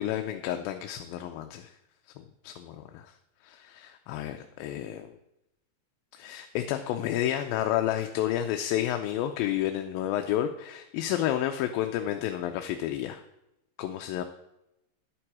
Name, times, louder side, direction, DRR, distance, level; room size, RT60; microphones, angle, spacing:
voice 1, 0.0-1.7 2.4-3.1 3.4-5.1 6.1-13.2 13.8-14.2, left 12 dB, 85° left, 6 dB, 2.4 m, -30 dB
11.0 x 9.0 x 4.8 m, 0.89 s
omnidirectional pair, 4.1 m